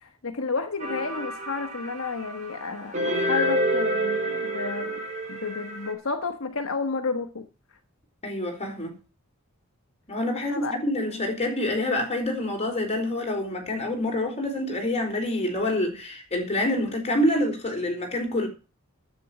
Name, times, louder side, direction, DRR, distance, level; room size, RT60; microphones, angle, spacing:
voice 1, 0.0-5.0 5.3-7.5 10.3-10.7 11.1-11.3, left 4 dB, 70° left, 1.2 m, -31 dB
sound 1, 0.8-5.9, equal, 35° right, 4.7 m, -28 dB
voice 2, 8.2-8.9 10.1-18.5, left 1 dB, 30° left, 4.3 m, -27 dB
10.5 x 8.6 x 7.3 m
head